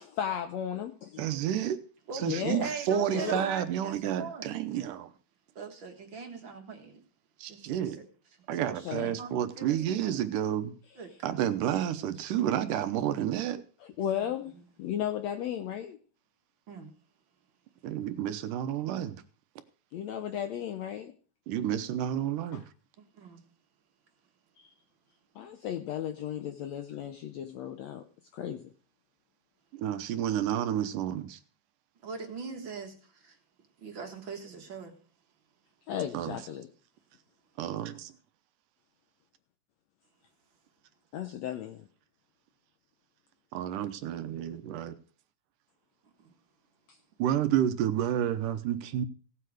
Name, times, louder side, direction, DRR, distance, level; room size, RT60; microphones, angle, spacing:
voice 1, 0.0-1.3 2.2-2.7 3.1-3.5 8.8-9.1 13.8-14.5 14.8-16.0 19.9-21.1 22.5-22.6 24.6-24.7 25.3-28.0 28.3-28.7 35.9-36.7 41.1-41.9 46.9-47.0, left 10 dB, 75° left, 1.6 m, -35 dB
voice 2, 1.2-1.8 2.2-5.1 7.4-8.0 8.5-10.7 11.2-13.6 17.8-19.2 21.5-22.6 29.7-31.4 36.1-36.3 37.6-38.1 43.5-44.9 47.2-49.1, right 10 dB, 80° right, 2.4 m, -30 dB
voice 3, 2.1-4.5 5.6-7.0 7.5-8.1 8.5-10.2 11.0-11.4 12.1-12.2 14.1-14.2 14.5-14.7 16.7-16.9 23.1-23.4 32.0-33.4 33.8-35.0 46.2-46.3, right 5 dB, 45° right, 1.7 m, -42 dB
17.0 x 7.9 x 4.8 m
omnidirectional pair, 3.9 m